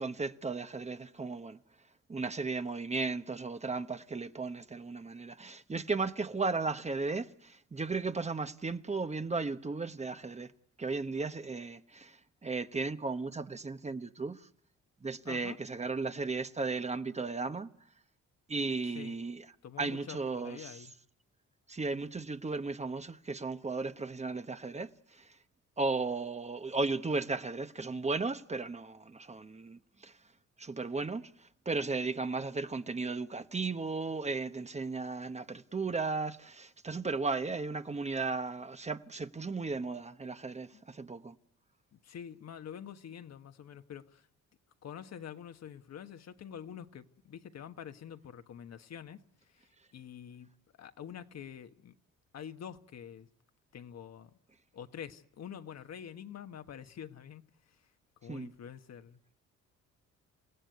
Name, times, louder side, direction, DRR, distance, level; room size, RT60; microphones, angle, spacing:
voice 1, 0.0-1.6 2.1-10.5 10.8-14.5 15.0-17.7 18.5-19.4 19.8-20.9 21.7-25.4 25.8-30.2 30.6-41.3 58.3-58.5, right 3 dB, 20° right, 1.1 m, -35 dB
voice 2, 15.2-15.6 18.9-19.2 19.6-20.9 40.7-40.8 41.9-44.3 44.8-50.5 50.8-52.0 52.3-53.3 53.7-54.3 54.7-57.8 58.2-59.2, left 8 dB, 60° left, 1.4 m, -47 dB
29.0 x 16.5 x 9.5 m
cardioid pair, 90°, 30 cm